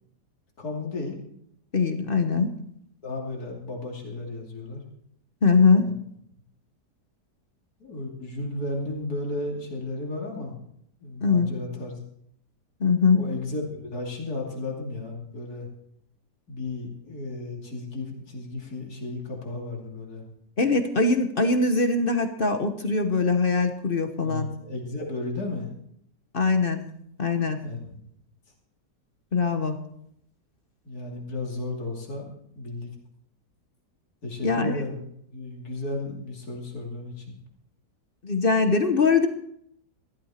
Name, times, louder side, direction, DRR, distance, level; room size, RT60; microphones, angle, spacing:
voice 1, 0.6-1.1 3.0-4.8 7.8-10.6 11.0-12.0 13.1-15.7 16.5-20.3 24.2-25.7 27.6-28.0 30.8-32.3 32.5-32.9 34.2-35.0 35.3-37.3, left 2 dB, 60° left, -1 dB, 3.3 m, -34 dB
voice 2, 1.7-2.5 5.4-5.9 11.2-11.5 12.8-13.2 20.6-24.5 26.3-26.8 27.2-27.6 29.3-29.8 34.4-34.7 38.2-39.3, left 4 dB, 40° left, 7 dB, 1.0 m, -22 dB
15.0 x 13.0 x 4.3 m, 0.71 s
omnidirectional pair, 1.8 m